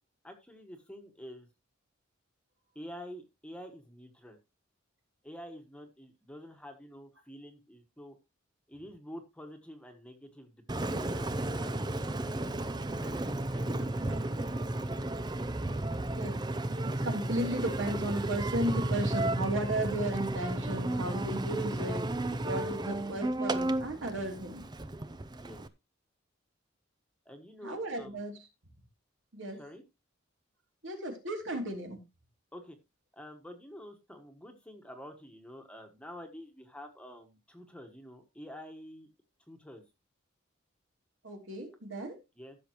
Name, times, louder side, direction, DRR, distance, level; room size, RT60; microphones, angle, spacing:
voice 1, 0.2-1.5 2.7-4.4 5.2-8.2 8.7-12.5 12.8-14.7 21.7-21.9 25.4-25.7 27.2-28.3 29.6-29.8 32.5-32.8 33.1-39.1 39.5-39.8 42.4-42.6, equal, 5° left, 1.4 m, -48 dB
Engine, 10.7-25.7, right 1 dB, 20° right, 0.5 m, -33 dB
voice 2, 16.1-16.4 16.8-22.1 22.4-24.7 27.6-28.4 29.3-29.6 30.8-32.0 41.2-42.2, right 1 dB, 70° right, 3.1 m, -35 dB
15.0 x 6.9 x 3.0 m
head